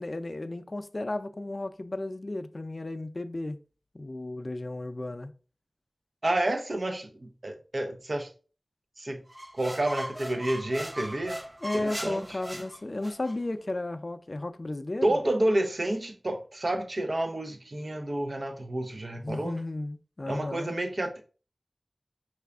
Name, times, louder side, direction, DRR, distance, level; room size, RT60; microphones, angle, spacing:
voice 1, 0.0-3.6 3.9-5.3 11.6-15.2 19.2-20.7, left 2 dB, 55° left, 0.4 m, -34 dB
voice 2, 6.2-8.3 9.0-9.2 9.5-11.4 11.7-12.2 15.0-19.5 20.3-21.3, right 1 dB, 70° right, 0.6 m, -29 dB
sound 1, 9.3-13.4, equal, 20° right, 0.4 m, -39 dB
5.5 x 2.4 x 3.4 m
wide cardioid pair, 50°, 0 cm